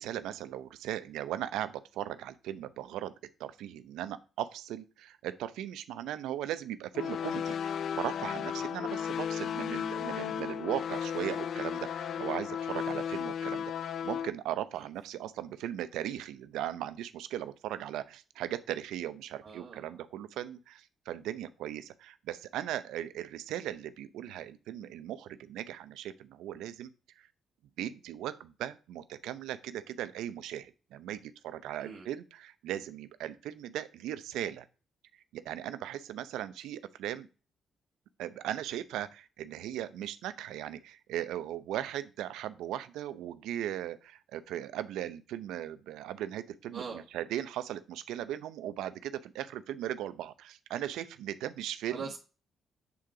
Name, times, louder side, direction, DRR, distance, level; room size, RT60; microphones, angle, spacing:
voice 1, 0.0-3.1 3.4-26.9 27.2-27.3 27.8-34.7 35.3-37.3 38.2-52.1, right 12 dB, 90° right, 0.7 m, -38 dB
sound 1, 6.9-14.3, left 8 dB, 60° left, 0.4 m, -34 dB
voice 2, 19.4-19.9 31.8-32.0 46.7-47.0 51.9-52.2, right 5 dB, 60° right, 1.4 m, -42 dB
8.5 x 3.8 x 4.8 m
cardioid pair, 90°, 0 cm